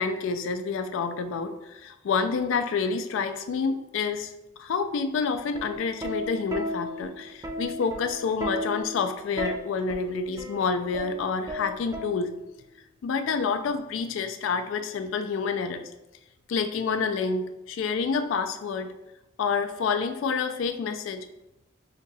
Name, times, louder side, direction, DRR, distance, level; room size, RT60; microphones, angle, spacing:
voice 1, 0.0-4.3 4.6-12.3 13.0-15.9 16.5-18.9 19.4-21.3, left 5 dB, 75° left, 7 dB, 0.3 m, -28 dB
Plucked string instrument, 5.3-12.6 13.7-14.0, equal, 20° right, 0.4 m, -35 dB
2.9 x 2.6 x 3.9 m, 0.95 s
head